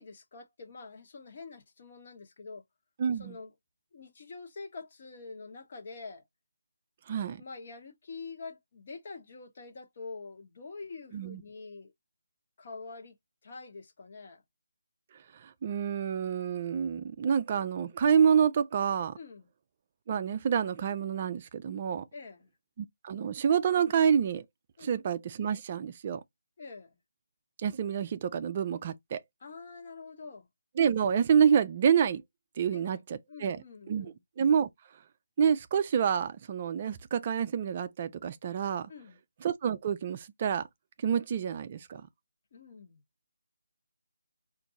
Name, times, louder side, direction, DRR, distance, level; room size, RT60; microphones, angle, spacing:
voice 1, 0.0-2.6 3.1-3.5 3.9-6.2 7.4-11.9 12.6-13.2 13.4-14.4 19.1-19.5 22.1-22.5 24.8-25.0 26.6-27.0 29.4-30.5 32.7-33.0 33.3-34.2 38.9-39.2 42.5-43.0, left 4 dB, 40° left, 1.0 m, -46 dB
voice 2, 3.0-3.3 7.1-7.4 11.1-11.4 15.4-19.1 20.1-22.0 22.8-24.4 24.8-26.2 27.6-29.2 30.8-32.2 32.6-33.6 33.9-34.7 35.4-38.9 39.4-40.7 41.0-42.0, right 7 dB, 30° right, 0.3 m, -28 dB
4.5 x 2.5 x 3.9 m
figure-of-eight pair, 160°, 0 cm